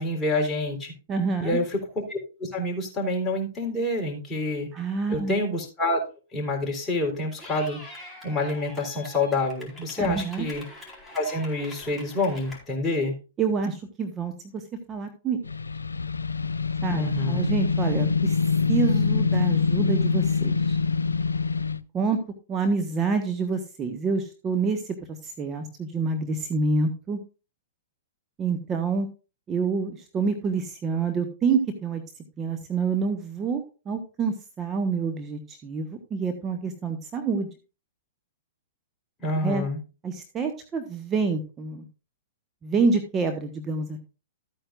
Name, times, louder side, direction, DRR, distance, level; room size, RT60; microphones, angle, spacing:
voice 1, 0.0-0.9 1.4-4.7 5.1-6.0 6.3-7.8 8.2-10.6 11.1-13.1 16.9-17.5 39.2-39.8, left 2 dB, 20° left, 0 dB, 3.9 m, -27 dB
voice 2, 1.1-1.6 4.7-5.3 10.0-10.5 13.4-14.6 14.9-15.4 16.8-18.4 18.7-20.8 21.9-22.2 22.5-25.0 25.2-27.2 28.4-29.1 29.5-32.0 32.4-37.5 39.4-39.6 40.0-41.8 42.6-44.0, right 4 dB, 25° right, 8 dB, 1.2 m, -27 dB
Clapping / Cheering, 7.4-12.6, left 2 dB, ahead, 4.3 m, -44 dB
sound 1, 15.4-21.8, left 5 dB, 90° left, 0.4 m, -24 dB
13.5 x 9.0 x 2.5 m, 0.31 s
hypercardioid pair, 115°, 0 cm